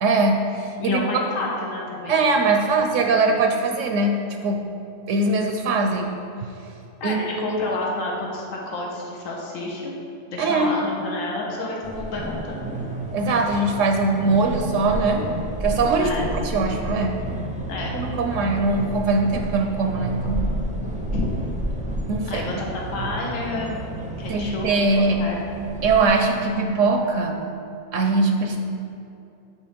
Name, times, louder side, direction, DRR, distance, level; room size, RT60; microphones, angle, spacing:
voice 1, 0.0-1.0 2.1-4.2 4.4-4.6 5.1-6.1 7.0-7.6 10.4-10.7 13.1-15.3 15.6-17.2 17.9-20.5 22.1-22.4 24.3-25.2 25.8-27.4 27.9-28.6, right 3 dB, 75° right, 4 dB, 0.9 m, -21 dB
voice 2, 0.8-2.2 7.0-10.0 10.3-12.7 16.0-16.3 17.7-17.9 21.1-21.3 22.3-23.8 24.2-25.4, left 2 dB, 80° left, -2 dB, 1.4 m, -30 dB
sound 1, 11.8-26.1, right 1 dB, 10° right, 0.4 m, -31 dB
8.4 x 4.2 x 5.1 m, 2.7 s
omnidirectional pair, 1.3 m